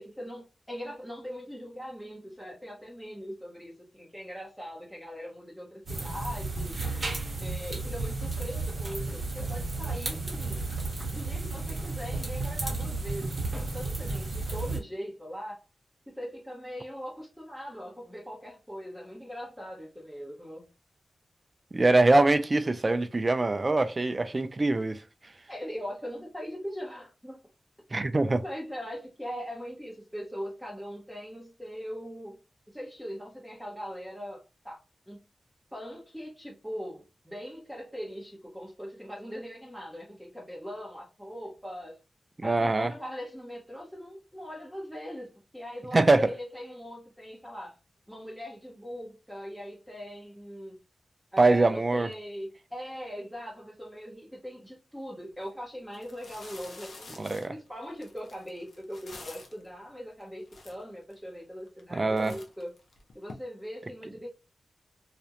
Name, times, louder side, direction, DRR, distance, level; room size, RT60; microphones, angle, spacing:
voice 1, 0.0-6.8 7.4-10.7 11.1-15.6 16.1-20.7 25.5-27.4 28.4-32.4 32.7-34.8 35.1-35.2 35.7-42.0 42.4-47.8 48.1-50.8 51.3-62.7 63.1-64.3, equal, ahead, 0.7 m, -41 dB
sound 1, 5.9-14.8, right 3 dB, 55° right, 0.9 m, -33 dB
voice 2, 21.7-25.0 27.9-28.4 42.4-42.9 45.9-46.3 51.4-52.1 57.2-57.5 61.9-62.4, right 2 dB, 35° right, 0.4 m, -23 dB
sound 2, 55.3-55.5 55.9-59.7 60.2-60.3 60.5-61.2 61.7-61.9 62.2-63.3, left 3 dB, 75° left, 0.6 m, -48 dB
2.4 x 2.1 x 2.8 m
cardioid pair, 65°, 0 cm